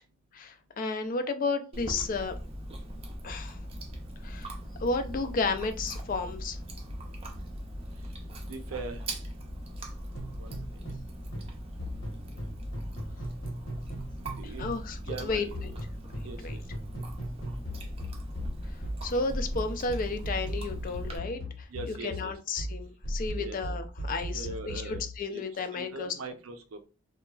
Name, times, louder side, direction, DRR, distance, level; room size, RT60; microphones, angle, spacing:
voice 1, 0.3-2.3 3.2-3.6 4.2-4.5 4.8-6.6 14.4-15.4 16.4-16.5 19.0-26.1, left 3 dB, 40° left, 0.4 m, -32 dB
Chewing mastication, 1.7-21.2, equal, 30° right, 0.5 m, -40 dB
voice 2, 8.5-9.0 10.4-10.5 14.2-14.7 15.1-15.8 16.2-16.6 21.7-22.3 23.3-23.6 24.3-25.0 25.3-25.5 25.7-26.8, right 3 dB, 75° right, 0.5 m, -41 dB
sound 1, 10.1-11.1 11.3-14.8 15.1-25.2, equal, 70° left, 1.1 m, -38 dB
2.8 x 2.3 x 2.3 m
head